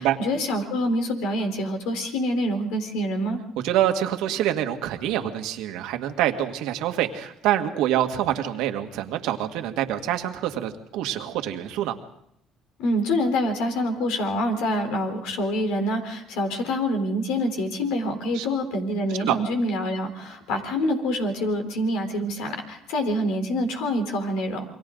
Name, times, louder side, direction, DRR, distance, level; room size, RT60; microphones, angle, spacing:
voice 1, 0.0-3.4 12.8-24.6, equal, 85° left, 5 dB, 3.9 m, -26 dB
voice 2, 3.6-12.0 18.3-18.4 19.2-19.4, right 12 dB, 80° right, 6 dB, 1.8 m, -26 dB
28.5 x 23.0 x 3.9 m, 0.74 s
cardioid pair, 90°, 0 cm